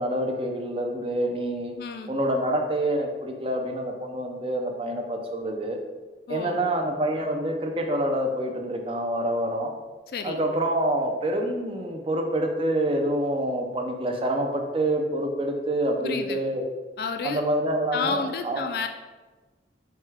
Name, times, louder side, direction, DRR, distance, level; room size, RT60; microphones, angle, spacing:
voice 1, 0.0-1.7 2.1-5.8 6.3-9.7 10.2-16.6 17.2-18.6, right 1 dB, 30° right, 2 dB, 0.5 m, -27 dB
voice 2, 1.8-2.1 6.3-6.6 10.1-10.4 16.0-16.4 17.0-17.4 17.9-18.9, left 5 dB, 55° left, 7 dB, 0.3 m, -30 dB
6.3 x 2.3 x 3.3 m, 1.2 s
head